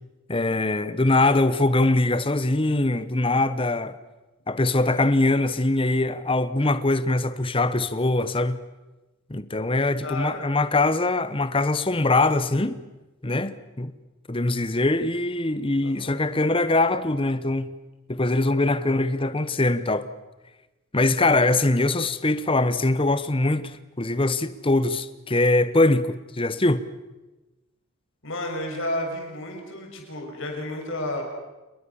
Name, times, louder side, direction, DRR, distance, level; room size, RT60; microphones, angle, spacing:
voice 1, 0.3-4.0 4.5-8.6 9.3-12.8 13.2-13.9 14.3-17.7 18.1-20.1 20.9-26.8, left 2 dB, 25° left, 1.0 m, -22 dB
voice 2, 10.0-10.8 15.8-16.2 28.2-31.2, left 1 dB, 60° left, 6.6 m, -32 dB
29.0 x 21.5 x 7.2 m
head